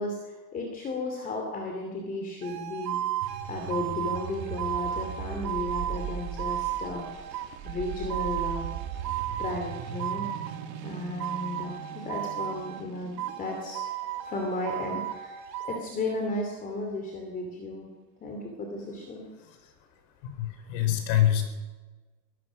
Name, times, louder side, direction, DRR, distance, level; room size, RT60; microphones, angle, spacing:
voice 1, 0.0-3.0 3.5-8.7 9.4-10.3 10.8-13.8 14.2-17.9 18.2-19.3, left 2 dB, 15° left, 2 dB, 2.8 m, -34 dB
sound 1, 2.4-10.7 11.2-12.9 13.2-15.8, right 11 dB, 85° right, 3.0 m, -34 dB
sound 2, 3.2-15.6, right 9 dB, 35° right, 2.2 m, -39 dB
voice 2, 20.4-21.4, left 12 dB, 45° left, 7 dB, 4.6 m, -24 dB
24.0 x 18.0 x 6.2 m, 1.3 s
supercardioid pair, 165°, 49 cm